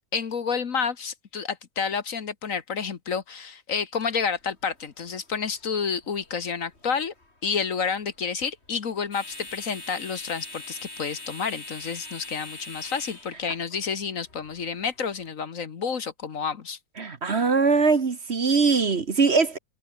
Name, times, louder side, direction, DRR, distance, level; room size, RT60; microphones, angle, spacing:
voice 1, 0.1-7.1 7.4-16.8, left 6 dB, 55° left, 1.7 m, -30 dB
sound 1, 3.9-15.3, left 2 dB, 40° left, 5.2 m, -44 dB
voice 2, 17.0-19.6, right 4 dB, 45° right, 1.6 m, -21 dB
omnidirectional pair, 1.7 m